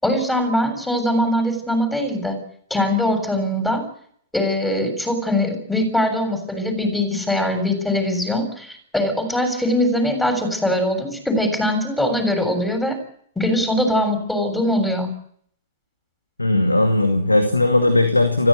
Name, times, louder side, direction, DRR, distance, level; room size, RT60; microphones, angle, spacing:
voice 1, 0.0-2.4 2.7-3.8 4.3-13.0 13.4-15.1, left 1 dB, 5° left, 6 dB, 7.3 m, -21 dB
voice 2, 16.4-18.5, left 2 dB, 85° left, 6 dB, 2.4 m, -17 dB
29.0 x 15.5 x 8.2 m, 0.64 s
figure-of-eight pair, 105°, 0 cm